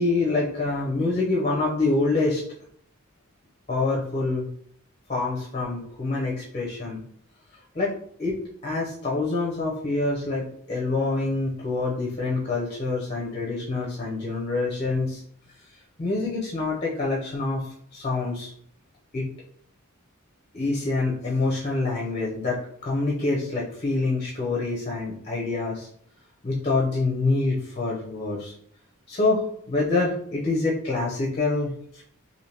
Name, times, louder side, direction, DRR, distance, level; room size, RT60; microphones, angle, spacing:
voice 1, 0.0-2.4 3.7-4.5 5.1-7.0 7.7-7.9 8.2-8.4 8.6-15.2 16.0-18.5 19.1-19.3 20.5-25.9 26.4-28.5 29.1-32.0, left 3 dB, 30° left, -3 dB, 0.6 m, -26 dB
3.3 x 2.6 x 2.8 m, 0.66 s
head